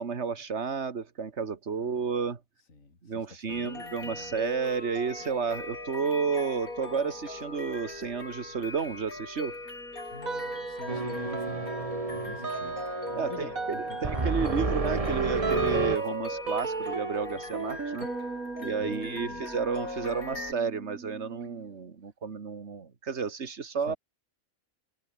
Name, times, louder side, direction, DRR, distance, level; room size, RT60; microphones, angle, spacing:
voice 1, 0.0-2.4 3.0-9.6 13.1-18.1 18.6-23.9, right 5 dB, 50° right, 2.0 m, -32 dB
voice 2, 1.8-2.1 2.7-4.4 10.1-12.8 13.2-15.4 18.8-19.5 23.9-24.0, left 3 dB, 65° left, 3.6 m, -47 dB
sound 1, 3.5-20.5, left 2 dB, 85° left, 6.0 m, -40 dB
sound 2, 10.2-11.0 11.3-21.7, right 4 dB, 75° right, 3.0 m, -37 dB
sound 3, 10.9-16.0, right 3 dB, 25° right, 1.4 m, -30 dB
omnidirectional pair, 1.5 m